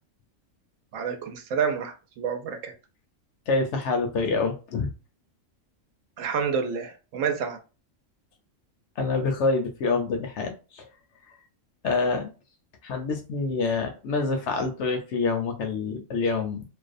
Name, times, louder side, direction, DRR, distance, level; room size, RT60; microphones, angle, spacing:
voice 1, 0.9-2.7 6.2-7.6, right 6 dB, 80° right, 0.9 m, -28 dB
voice 2, 3.5-4.9 9.0-10.8 11.8-12.3 12.8-16.6, left 4 dB, 65° left, 0.8 m, -26 dB
2.6 x 2.1 x 2.4 m
omnidirectional pair, 1.4 m